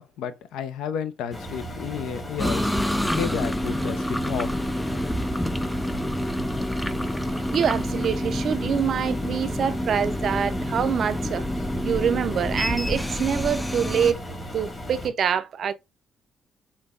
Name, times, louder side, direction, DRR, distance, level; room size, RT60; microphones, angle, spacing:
voice 1, 0.0-2.7 3.2-4.8, left 8 dB, 90° left, 0.4 m, -32 dB
Engine, 1.3-15.1, equal, 20° left, 1.1 m, -36 dB
sound 1, 2.4-14.1, left 1 dB, 5° left, 0.3 m, -28 dB
voice 2, 7.5-11.4 11.8-14.2 14.5-15.7, right 8 dB, 60° right, 0.4 m, -25 dB
5.1 x 2.2 x 2.3 m
cardioid pair, 90°, 0 cm